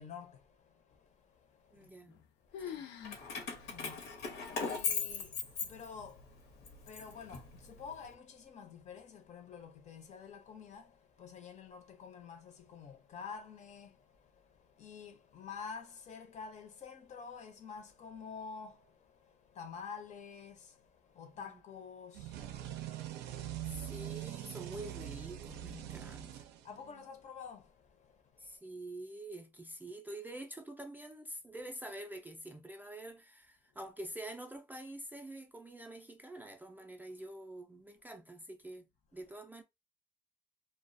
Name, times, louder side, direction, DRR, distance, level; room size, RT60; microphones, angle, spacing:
voice 1, 0.0-1.9 2.4-2.8 3.2-23.9 26.6-28.6, left 6 dB, 45° left, 0.6 m, -50 dB
voice 2, 1.7-2.2 2.6-2.9 21.4-21.6 23.6-26.5 28.4-39.6, right 1 dB, 10° right, 0.3 m, -47 dB
sound 1, 1.8-2.3 2.5-3.3 3.6-3.7 4.4-4.5 5.2-5.6, left 9 dB, 90° left, 0.5 m, -45 dB
Keys jangling, 3.0-6.2 6.7-7.9, left 5 dB, 70° left, 0.8 m, -38 dB
sound 2, 22.1-27.0, right 12 dB, 85° right, 0.4 m, -43 dB
2.3 x 2.1 x 2.5 m
cardioid pair, 110°, 17 cm